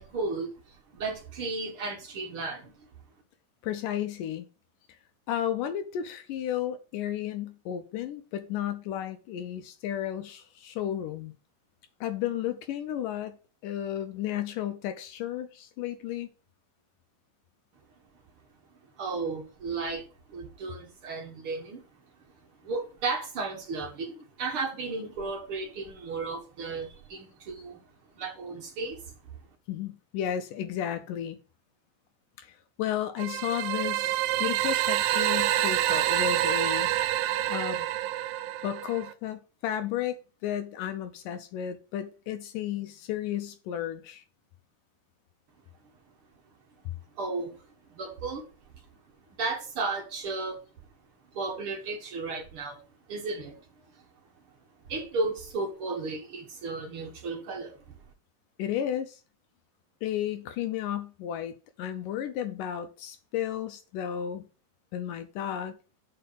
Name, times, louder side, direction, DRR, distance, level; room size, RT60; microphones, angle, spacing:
voice 1, 0.0-2.7 19.0-21.8 22.6-27.8 28.2-29.1 47.1-47.6 47.9-48.5 49.4-50.6 51.3-52.8 53.1-53.6 54.9-57.8, right 3 dB, 55° right, 1.5 m, -34 dB
voice 2, 3.6-4.5 5.3-11.3 12.0-13.4 13.6-16.3 29.7-31.4 32.4-36.9 37.5-37.9 38.6-44.2 46.9-47.0 58.6-59.2 60.0-64.4 64.9-65.8, left 10 dB, 75° left, 2.2 m, -33 dB
sound 1, 33.2-39.1, right 13 dB, 85° right, 2.4 m, -27 dB
6.7 x 5.1 x 6.8 m
omnidirectional pair, 4.1 m